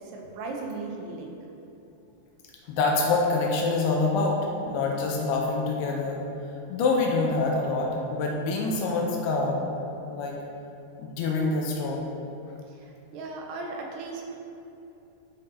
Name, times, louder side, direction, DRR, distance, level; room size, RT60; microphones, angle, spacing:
voice 1, 0.0-1.4 12.7-14.3, right 3 dB, 85° right, 0 dB, 2.9 m, -37 dB
voice 2, 2.7-6.2 6.7-9.7 10.1-10.3 11.0-12.1, left 3 dB, 90° left, -1 dB, 2.7 m, -26 dB
12.0 x 5.3 x 2.8 m, 2.9 s
omnidirectional pair, 4.5 m